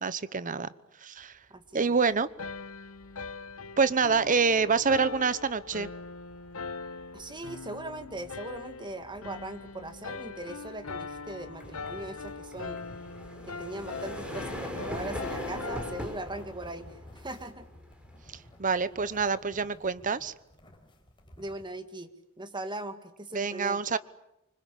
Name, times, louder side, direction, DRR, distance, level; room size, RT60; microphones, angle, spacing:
voice 1, 0.0-0.7 1.0-1.3 1.7-2.3 3.8-5.9 18.6-20.3 23.3-24.0, right 5 dB, 40° right, 15 dB, 0.9 m, -26 dB
voice 2, 1.5-2.0 7.1-12.8 13.5-17.7 21.4-22.1 22.4-23.8, right 1 dB, 20° right, 8 dB, 2.1 m, -40 dB
sound 1, 2.3-2.6 3.0-19.7, equal, 5° right, 4.8 m, -43 dB
sound 2, 2.4-16.1, left 4 dB, 80° left, 1.1 m, -41 dB
sound 3, 15.1-21.6, left 1 dB, 25° left, 4.4 m, -55 dB
26.0 x 25.5 x 8.5 m, 0.87 s
head